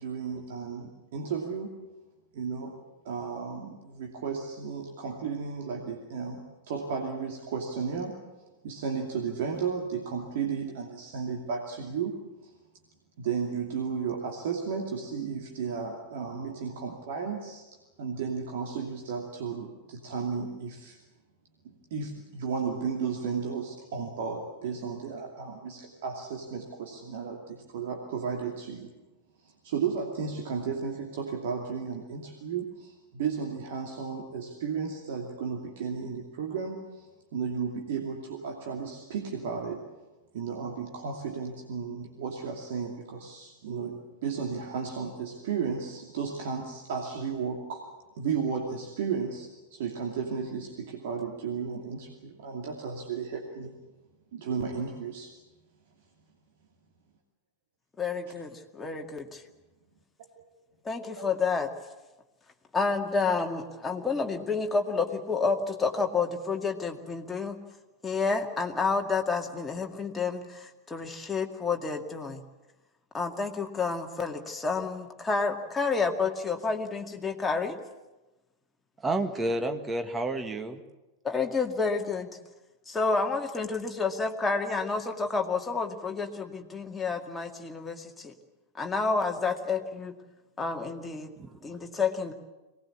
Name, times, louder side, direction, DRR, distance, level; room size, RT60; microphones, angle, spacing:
voice 1, 0.0-1.8 2.3-2.8 3.0-6.4 6.7-8.2 8.6-12.5 13.2-17.6 18.0-21.0 21.9-28.9 29.4-39.9 40.3-47.9 48.1-53.8 54.3-55.3 61.2-61.3, right 6 dB, 55° right, 1 dB, 2.7 m, -34 dB
voice 2, 58.0-59.4 60.8-61.7 62.7-67.6 68.0-72.4 73.1-77.8 81.2-82.3 82.9-88.3 88.8-90.1 90.6-91.3 91.6-92.3, left 4 dB, 15° left, 2 dB, 2.2 m, -29 dB
voice 3, 79.0-80.8 91.4-91.6, right 2 dB, 15° right, 7 dB, 1.8 m, -30 dB
23.0 x 19.0 x 8.5 m, 1.1 s
figure-of-eight pair, 90°, 0 cm